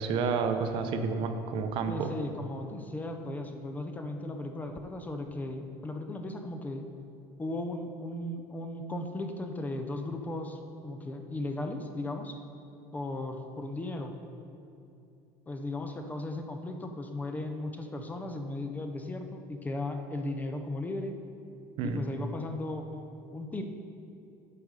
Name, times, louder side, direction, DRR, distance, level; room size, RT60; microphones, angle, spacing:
voice 1, 0.0-2.1 21.8-22.0, right 5 dB, 55° right, 7 dB, 0.7 m, -30 dB
voice 2, 1.9-6.9 7.4-12.4 12.9-14.2 15.5-21.2 21.8-23.6, left 2 dB, 15° left, 5 dB, 0.5 m, -36 dB
8.4 x 5.2 x 4.8 m, 2.7 s
supercardioid pair, 130°, 11 cm